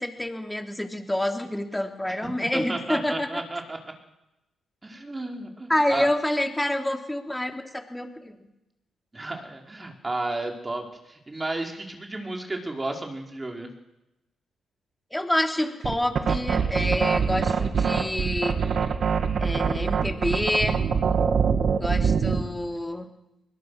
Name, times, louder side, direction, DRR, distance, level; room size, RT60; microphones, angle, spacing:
voice 1, 0.0-3.4 5.7-8.4 15.1-18.6 19.4-20.8 21.8-23.1, left 1 dB, 10° left, 4 dB, 3.3 m, -27 dB
voice 2, 2.1-3.8 4.8-6.1 9.1-13.7, right 2 dB, 25° right, 2 dB, 4.6 m, -33 dB
sound 1, 15.8-22.5, right 6 dB, 60° right, 2.4 m, -24 dB
23.0 x 20.5 x 6.6 m, 0.92 s
cardioid pair, 65°, 0 cm